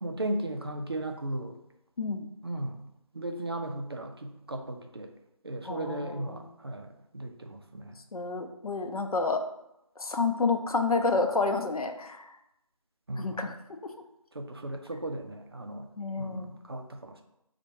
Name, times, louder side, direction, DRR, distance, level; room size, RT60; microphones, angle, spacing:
voice 1, 0.0-1.6 2.4-2.8 3.1-5.1 5.4-8.0 13.1-13.5 14.3-15.9 16.2-17.2, right 1 dB, 45° right, 4 dB, 0.4 m, -36 dB
voice 2, 5.6-6.4 8.1-9.4 10.0-12.2 13.2-13.5 16.0-16.5, left 4 dB, 90° left, 6 dB, 0.5 m, -29 dB
4.4 x 2.2 x 2.8 m, 0.84 s
figure-of-eight pair, 170°, 18 cm